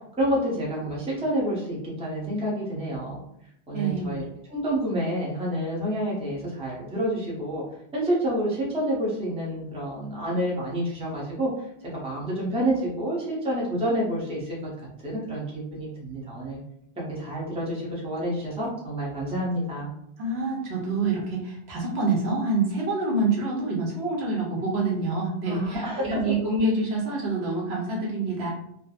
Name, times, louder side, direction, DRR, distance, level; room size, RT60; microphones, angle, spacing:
voice 1, 0.2-3.2 3.7-4.2 4.5-7.6 7.9-11.5 11.9-14.6 15.0-16.6 17.0-19.9 25.5-26.2, equal, 5° right, -6 dB, 0.6 m, -28 dB
voice 2, 3.7-4.2 20.2-28.5, right 2 dB, 70° right, -2 dB, 1.0 m, -26 dB
2.8 x 2.1 x 2.4 m, 0.75 s
omnidirectional pair, 1.1 m